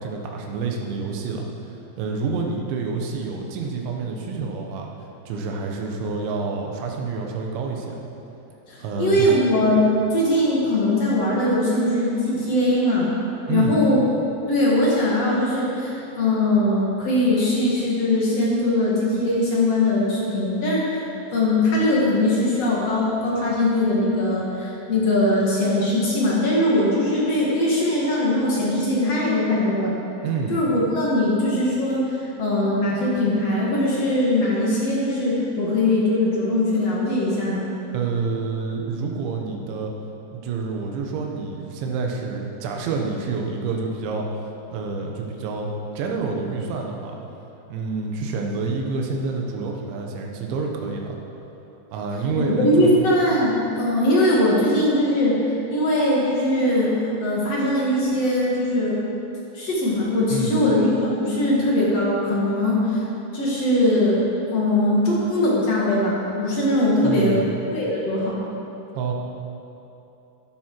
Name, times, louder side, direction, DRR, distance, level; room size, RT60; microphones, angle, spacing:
voice 1, 0.0-1.5 2.0-4.9 5.3-8.0 8.8-9.3 13.5-13.8 30.2-30.6 37.9-39.9 40.3-44.4 44.7-47.2 47.7-51.2 51.9-53.0 60.3-60.6 67.0-67.5 68.9-69.1, right 4 dB, 75° right, 1 dB, 3.5 m, -28 dB
voice 2, 8.7-9.8 10.1-13.1 13.5-14.1 14.5-21.0 21.3-29.9 30.5-37.7 52.4-55.3 55.7-56.9 57.2-59.0 59.5-63.0 63.3-64.2 64.5-67.4 67.7-68.4, left 1 dB, 50° left, -5 dB, 2.1 m, -21 dB
13.5 x 11.0 x 4.7 m, 2.9 s
omnidirectional pair, 5.4 m